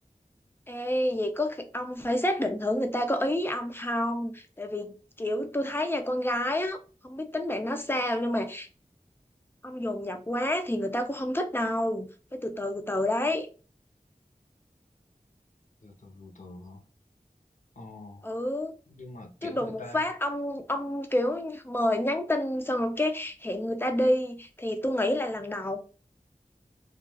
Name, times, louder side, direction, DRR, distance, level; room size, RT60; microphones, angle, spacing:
voice 1, 0.7-6.8 7.0-8.7 9.6-13.5 18.2-18.7 19.4-25.8, left 1 dB, 15° left, 0.5 m, -29 dB
voice 2, 15.8-16.8 17.8-18.3 18.9-20.1, left 2 dB, 55° left, 0.7 m, -44 dB
3.3 x 2.3 x 2.2 m
wide cardioid pair, 45°, 15 cm